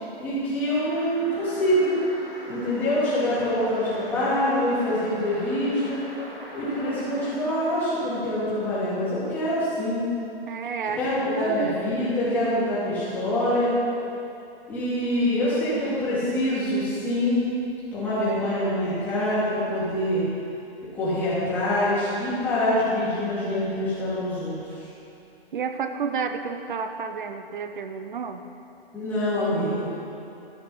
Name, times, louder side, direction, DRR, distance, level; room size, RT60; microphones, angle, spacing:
voice 1, 0.2-2.0 2.5-6.0 6.5-10.0 11.0-13.7 14.7-17.4 17.9-20.2 20.9-24.6 28.9-29.9, left 1 dB, 5° left, -12 dB, 2.4 m, -25 dB
sound 1, 0.7-7.4, equal, 25° right, 2.7 m, -41 dB
voice 2, 10.5-11.0 11.3-11.8 25.5-28.4, right 6 dB, 55° right, 8 dB, 0.6 m, -30 dB
13.5 x 5.8 x 5.7 m, 2.8 s
hypercardioid pair, 175°, 31 cm